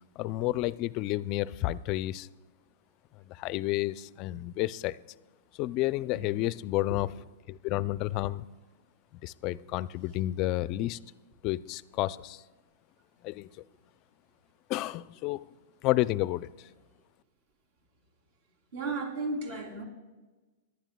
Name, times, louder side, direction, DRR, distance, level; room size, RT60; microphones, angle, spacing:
voice 1, 0.2-2.3 3.3-5.0 5.6-7.1 7.5-8.5 9.2-11.0 11.4-12.4 13.2-13.5 14.7-15.5 15.8-16.5, left 16 dB, 45° left, 17 dB, 0.4 m, -30 dB
voice 2, 18.7-19.8, right 3 dB, 60° right, 1 dB, 3.2 m, -34 dB
23.5 x 11.5 x 2.3 m, 1.2 s
hypercardioid pair, 120°, 0 cm